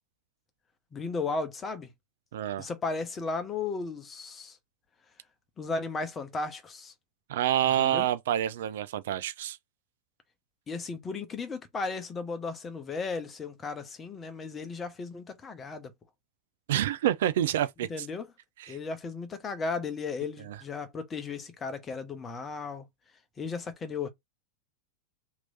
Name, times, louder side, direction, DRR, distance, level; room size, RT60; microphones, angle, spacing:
voice 1, 0.9-1.9 2.6-4.6 5.6-6.9 7.8-8.0 10.7-15.9 17.9-18.3 18.7-22.8 23.4-24.1, left 4 dB, 20° left, 0.9 m, -35 dB
voice 2, 2.3-2.7 7.3-9.6 16.7-18.1 18.6-18.8 20.4-20.6, right 11 dB, 55° right, 0.4 m, -28 dB
3.0 x 2.9 x 4.0 m
figure-of-eight pair, 90°, 0 cm